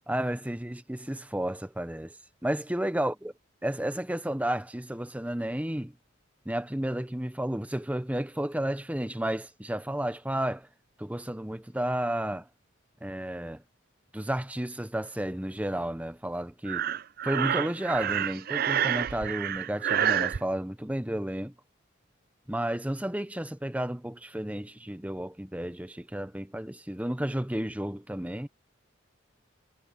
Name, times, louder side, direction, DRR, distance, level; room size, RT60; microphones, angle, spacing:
voice 1, 0.1-2.2 2.4-3.3 3.6-5.9 6.5-10.7 11.0-12.4 13.0-13.6 14.1-16.9 17.2-21.5 22.5-28.5, right 1 dB, 5° right, 0.8 m, -32 dB
Breathing, 16.7-20.4, right 9 dB, 45° right, 0.4 m, -28 dB
head